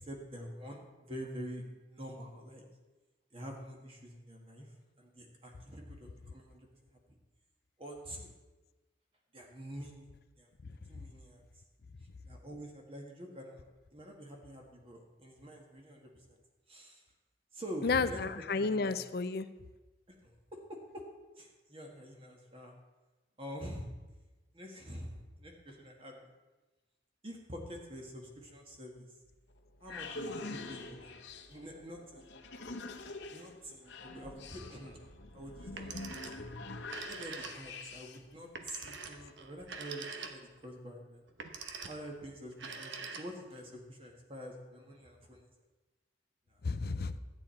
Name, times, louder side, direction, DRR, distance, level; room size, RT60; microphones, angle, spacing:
voice 1, 0.0-2.6 3.3-4.7 5.0-6.7 7.8-8.3 9.3-10.1 10.4-10.5 10.9-11.4 12.3-16.4 16.7-17.0 17.5-18.2 18.6-18.9 20.2-20.6 20.9-21.0 21.3-22.7 23.4-23.9 24.5-26.3 27.2-29.2 29.8-31.2 31.5-32.3 33.3-35.1 35.3-36.4 37.1-41.2 41.9-42.9 43.2-45.5 46.5-46.6, equal, 30° right, 1 dB, 1.7 m, -46 dB
voice 2, 17.8-19.5 46.6-47.2, left 4 dB, 55° left, 13 dB, 0.5 m, -32 dB
sound 1, 29.3-38.3, left 2 dB, 85° left, 1.0 m, -45 dB
Telephone, 35.6-36.5 36.8-37.9 38.5-40.6 41.3-42.1 42.5-43.6, right 5 dB, 90° right, 1.0 m, -44 dB
12.5 x 8.9 x 4.5 m, 1.2 s
head